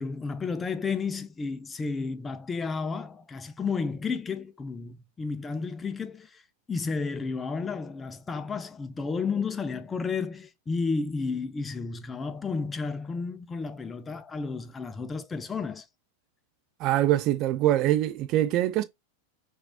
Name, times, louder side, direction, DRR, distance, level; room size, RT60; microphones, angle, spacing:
voice 1, 0.0-6.4 6.7-15.9, left 4 dB, 15° left, 0.4 m, -32 dB
voice 2, 16.8-18.8, right 13 dB, 40° right, 0.5 m, -24 dB
5.9 x 2.5 x 2.8 m
figure-of-eight pair, 90°, 0 cm